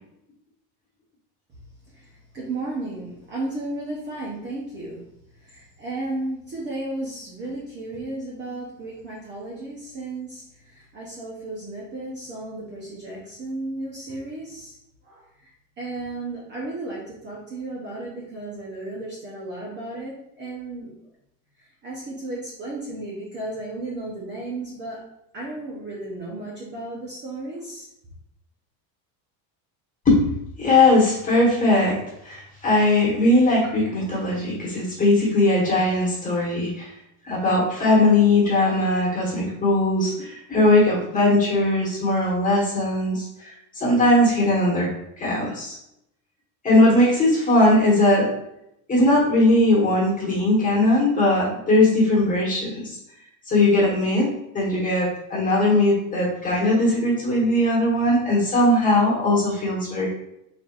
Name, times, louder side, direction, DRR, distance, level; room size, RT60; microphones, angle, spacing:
voice 1, 1.9-5.0 5.4-14.8 15.0-20.9 21.6-25.1 25.3-27.9, right 2 dB, 25° right, -5 dB, 0.8 m, -34 dB
voice 2, 30.6-32.0 32.2-36.9 37.2-44.9 45.2-45.8 46.6-48.3 48.9-53.0 53.5-60.1, left 1 dB, 15° left, -5 dB, 1.3 m, -19 dB
4.4 x 3.9 x 2.4 m, 0.81 s
cardioid pair, 165°, 44 cm